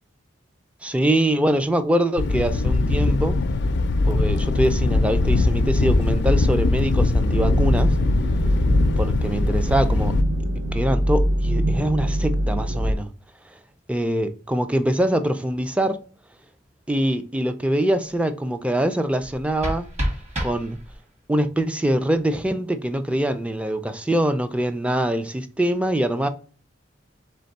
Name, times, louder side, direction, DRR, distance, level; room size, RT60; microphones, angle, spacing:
voice 1, 0.8-3.4 4.0-8.0 9.0-10.1 10.7-13.1 13.9-16.0 16.9-19.9 20.4-20.8 21.3-26.3, right 1 dB, 5° right, 0.3 m, -23 dB
Thunder, 2.2-10.2, left 2 dB, 65° left, 0.4 m, -21 dB
sound 1, 7.3-12.9, equal, 85° right, 0.6 m, -23 dB
sound 2, 19.2-21.2, equal, 40° right, 1.5 m, -30 dB
3.5 x 3.4 x 4.0 m
head